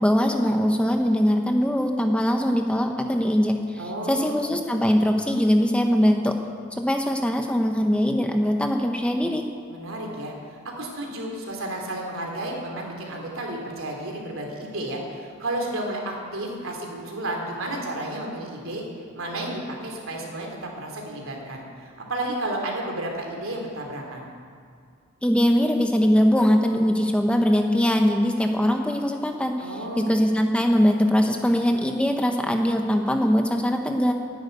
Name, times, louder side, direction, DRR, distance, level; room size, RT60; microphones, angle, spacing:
voice 1, 0.0-3.8 4.1-6.3 6.7-9.5 25.2-29.7 30.0-34.1, equal, 5° left, 3 dB, 0.8 m, -21 dB
voice 2, 3.8-4.4 9.7-18.8 19.1-24.3 29.6-30.1, right 1 dB, 75° right, 0 dB, 3.1 m, -32 dB
12.0 x 10.5 x 9.4 m, 2.2 s
head